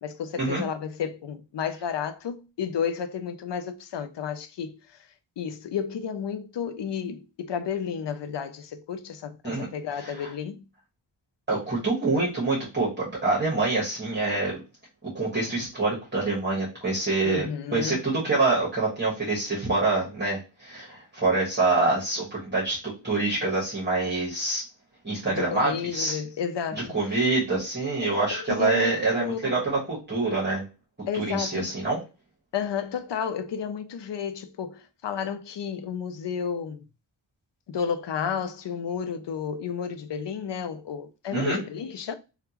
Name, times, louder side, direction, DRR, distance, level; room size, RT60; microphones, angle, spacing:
voice 1, 0.0-4.8 5.4-10.7 17.2-18.0 25.3-27.0 28.0-29.6 31.1-31.8 32.5-36.8 37.7-42.1, left 7 dB, 65° left, 0.5 m, -32 dB
voice 2, 10.0-10.3 11.5-14.6 15.0-24.6 25.0-26.2 26.7-30.6 31.1-32.0 41.3-41.6, right 3 dB, 25° right, 1.2 m, -26 dB
3.5 x 2.4 x 2.9 m
wide cardioid pair, 120°, 47 cm